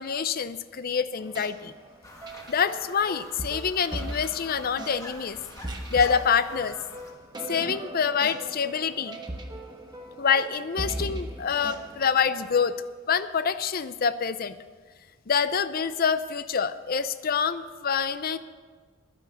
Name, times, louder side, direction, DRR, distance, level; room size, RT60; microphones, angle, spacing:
voice 1, 0.0-1.7 2.5-5.4 5.9-6.8 7.5-9.2 10.2-12.8 13.1-14.5 15.3-18.4, left 6 dB, 45° left, 12 dB, 0.5 m, -26 dB
sound 1, 1.2-12.7, right 1 dB, 20° right, 1.1 m, -39 dB
sound 2, 2.0-7.1, left 1 dB, 15° left, 1.4 m, -46 dB
10.5 x 9.8 x 6.9 m, 1.5 s
head